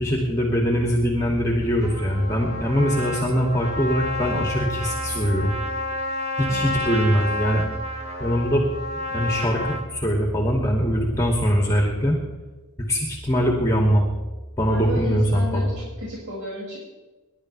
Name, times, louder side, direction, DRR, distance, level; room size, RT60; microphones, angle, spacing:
voice 1, 0.0-5.5 6.4-7.6 8.2-8.7 9.1-12.2 12.9-14.1 14.6-15.7, equal, 15° left, -1 dB, 2.4 m, -22 dB
Trumpet, 1.8-9.9, left 1 dB, 30° right, 2.3 m, -30 dB
voice 2, 14.7-15.7 16.0-16.8, left 1 dB, 70° right, -6 dB, 6.1 m, -32 dB
28.5 x 12.0 x 3.4 m, 1.2 s
head